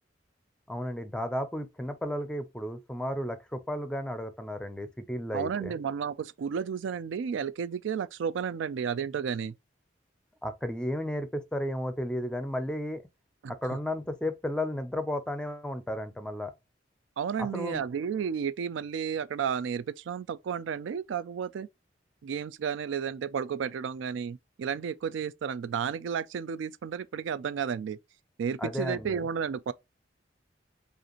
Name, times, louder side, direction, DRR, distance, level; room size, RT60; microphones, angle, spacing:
voice 1, 0.7-5.7 10.4-13.0 13.6-16.5 17.5-17.8 28.6-29.2, left 1 dB, 5° left, 0.5 m, -33 dB
voice 2, 5.3-9.5 13.4-13.5 17.2-21.7 22.2-28.0 28.4-29.7, right 7 dB, 80° right, 0.3 m, -32 dB
5.1 x 2.5 x 2.9 m
head